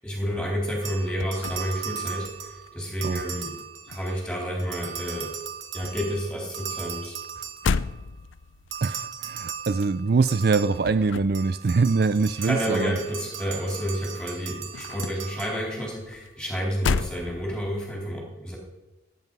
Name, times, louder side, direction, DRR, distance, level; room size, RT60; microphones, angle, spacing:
voice 1, 0.0-3.5 3.9-5.3 5.7-7.2 12.4-18.6, equal, 5° left, -1 dB, 3.9 m, -30 dB
sound 1, 0.8-4.3 4.6-8.0 8.7-16.0, right 8 dB, 85° right, 1.3 m, -38 dB
sound 2, 0.9-2.7 3.0-4.9 5.2-13.9 14.1-17.8, left 5 dB, 90° left, 0.5 m, -34 dB
voice 2, 8.8-13.0, right 4 dB, 55° right, 13 dB, 0.4 m, -23 dB
17.0 x 9.4 x 5.4 m, 0.98 s
head